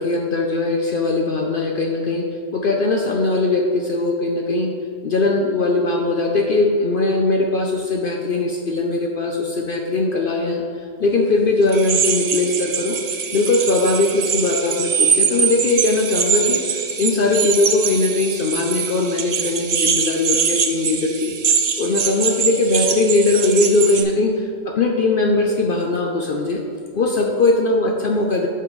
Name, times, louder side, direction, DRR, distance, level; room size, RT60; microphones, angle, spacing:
voice 1, 0.0-4.7 5.0-10.6 11.0-13.0 13.3-21.3 21.8-26.6 26.9-28.5, left 2 dB, 55° left, 1 dB, 0.6 m, -20 dB
sound 1, 11.7-24.0, right 6 dB, 90° right, 0.3 m, -23 dB
8.5 x 5.9 x 3.1 m, 2.2 s
omnidirectional pair, 1.3 m